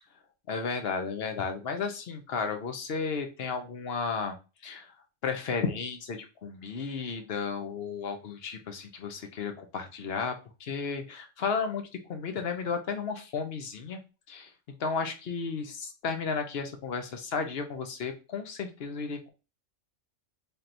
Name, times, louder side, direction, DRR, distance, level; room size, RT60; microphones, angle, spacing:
voice 1, 0.5-4.4 4.6-4.9 5.2-14.0 14.3-14.5 14.8-19.3, left 5 dB, 55° left, 6 dB, 0.9 m, -33 dB
4.3 x 3.3 x 2.5 m, 0.31 s
omnidirectional pair, 1.3 m